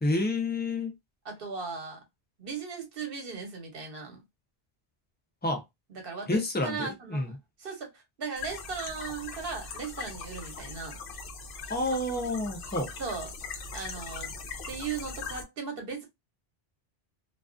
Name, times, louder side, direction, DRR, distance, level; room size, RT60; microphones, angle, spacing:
voice 1, 0.0-0.9 5.4-5.6 6.3-7.3 11.7-12.9, left 2 dB, 15° left, 0.4 m, -29 dB
voice 2, 1.2-2.0 2.4-4.2 5.9-7.3 7.6-11.0 13.0-13.3 13.7-14.3 14.7-16.1, right 5 dB, 65° right, 1.1 m, -37 dB
sound 1, 8.4-15.4, left 4 dB, 65° left, 0.7 m, -40 dB
2.3 x 2.3 x 2.4 m
omnidirectional pair, 1.0 m